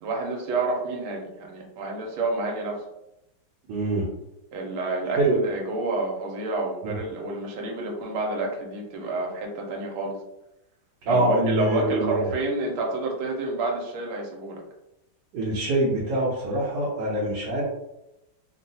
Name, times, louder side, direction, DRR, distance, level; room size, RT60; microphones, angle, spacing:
voice 1, 0.0-2.8 4.5-10.2 11.1-14.6, right 2 dB, 85° right, 0 dB, 1.5 m, -29 dB
voice 2, 3.7-4.1 5.2-5.4 6.8-6.9 11.1-12.3 15.3-17.6, right 1 dB, 70° right, -4 dB, 1.2 m, -24 dB
3.7 x 2.3 x 2.6 m, 0.89 s
omnidirectional pair, 2.3 m